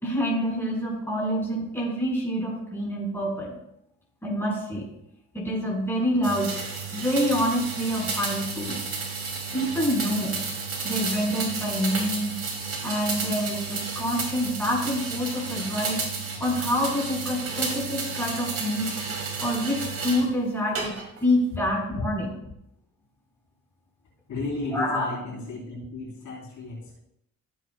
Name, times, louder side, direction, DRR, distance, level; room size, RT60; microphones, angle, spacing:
voice 1, 0.0-3.5 4.2-4.8 5.3-6.5 6.9-8.8 9.5-10.4 10.8-12.4 12.8-16.0 16.4-18.9 19.4-22.3 24.7-25.0, equal, 10° left, -3 dB, 4.0 m, -27 dB
sound 1, 6.2-20.3 20.8-21.3, right 4 dB, 50° right, 2.6 m, -32 dB
voice 2, 24.3-27.0, left 2 dB, 70° left, -4 dB, 3.4 m, -33 dB
14.5 x 7.7 x 2.2 m, 0.78 s
cardioid pair, 90°, 30 cm